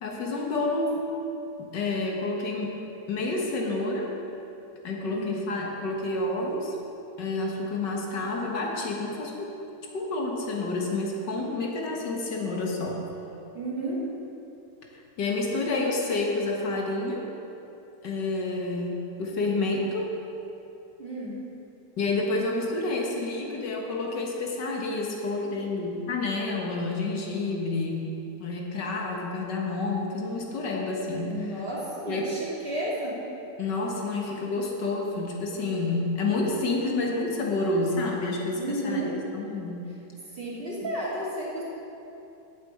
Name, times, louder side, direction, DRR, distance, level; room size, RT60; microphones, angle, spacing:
voice 1, 0.0-1.0 1.6-2.8 3.1-4.1 4.8-6.8 7.2-9.5 9.9-13.0 15.2-17.3 18.0-20.1 22.0-31.6 32.1-32.3 33.6-39.8, left 2 dB, 80° left, 0 dB, 2.0 m, -29 dB
voice 2, 5.0-5.4 13.5-14.0 21.0-21.3 31.3-33.1 38.5-39.2 40.3-41.6, right 1 dB, 30° right, -7 dB, 2.8 m, -32 dB
8.5 x 7.7 x 8.5 m, 2.8 s
omnidirectional pair, 1.9 m